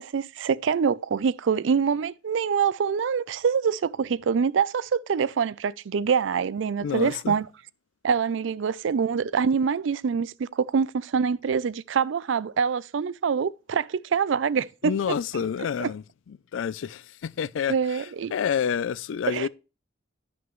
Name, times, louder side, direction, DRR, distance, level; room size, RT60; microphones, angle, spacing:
voice 1, 0.0-7.5 8.0-15.0 15.8-15.9 17.7-18.3 19.3-19.5, right 6 dB, 80° right, 0.4 m, -25 dB
voice 2, 6.8-7.4 14.8-19.5, left 7 dB, 85° left, 0.3 m, -29 dB
12.0 x 6.1 x 3.1 m
head